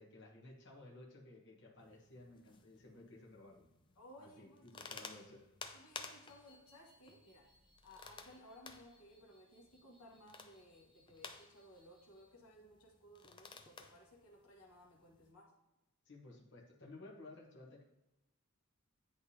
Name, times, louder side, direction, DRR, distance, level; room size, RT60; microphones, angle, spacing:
voice 1, 0.0-3.7 4.2-5.4 16.0-17.8, left 2 dB, 55° left, -3 dB, 1.2 m, -56 dB
sound 1, 1.8-15.3, left 4 dB, 20° left, 0.4 m, -56 dB
voice 2, 3.9-5.1 5.7-7.5 7.8-15.6, equal, 85° left, -1 dB, 1.3 m, -60 dB
sound 2, 6.1-12.3, left 1 dB, ahead, 1.2 m, -72 dB
9.9 x 3.4 x 2.8 m, 0.98 s
head